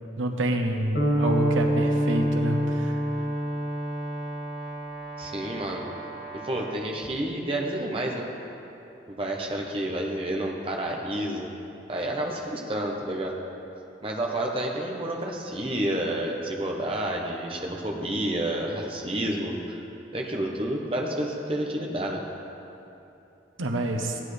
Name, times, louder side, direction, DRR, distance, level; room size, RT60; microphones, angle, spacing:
voice 1, 0.2-3.0 23.6-24.2, right 1 dB, 85° right, 3 dB, 0.9 m, -27 dB
sound 1, 0.9-5.2, equal, 85° left, 2.2 m, -26 dB
Brass instrument, 1.0-6.8, right 3 dB, 50° right, 2.2 m, -40 dB
voice 2, 5.2-5.8 6.3-8.3 9.1-11.5 11.9-13.4 14.0-19.8 20.1-22.2, right 1 dB, 30° right, 0 dB, 0.9 m, -30 dB
15.5 x 9.9 x 3.3 m, 2.9 s
head